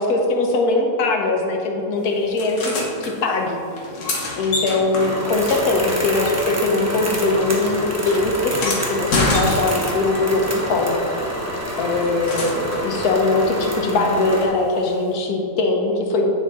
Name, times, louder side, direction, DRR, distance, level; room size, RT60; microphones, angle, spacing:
voice 1, 0.0-2.8 3.0-3.6 4.3-11.0 11.8-16.4, left 3 dB, 75° left, 1 dB, 1.4 m, -21 dB
sound 1, 2.4-3.1 3.7-6.7 7.0-10.1 11.6-12.9 14.9-15.0, left 2 dB, 55° left, 1.3 m, -27 dB
sound 2, 4.9-14.5, equal, 15° right, 0.5 m, -27 dB
9.5 x 3.7 x 4.0 m, 2.7 s
omnidirectional pair, 1.7 m